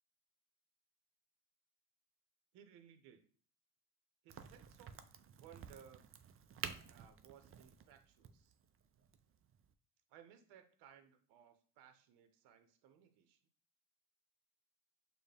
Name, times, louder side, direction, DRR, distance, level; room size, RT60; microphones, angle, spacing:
voice 1, 2.5-3.2 4.2-4.9 5.2-6.1 6.9-8.6 10.1-13.4, right 9 dB, 80° right, 8 dB, 0.8 m, -62 dB
Crack, 4.3-9.7, right 7 dB, 35° right, 0.4 m, -51 dB
6.5 x 2.2 x 3.3 m, 0.43 s
supercardioid pair, 80°, 40 cm